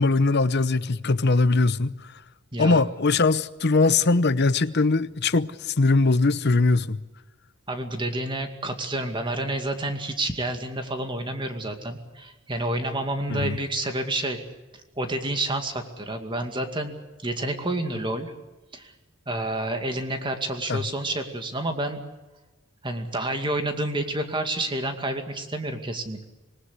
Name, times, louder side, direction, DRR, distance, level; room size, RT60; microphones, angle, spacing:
voice 1, 0.0-2.1 2.6-7.0 13.3-13.6 20.7-20.9, left 3 dB, 55° left, 0.8 m, -21 dB
voice 2, 2.5-2.8 7.7-14.4 15.0-16.9 17.2-18.3 18.7-18.9 19.3-22.0 22.8-26.2, right 1 dB, 25° right, 2.3 m, -29 dB
26.5 x 19.5 x 8.2 m
head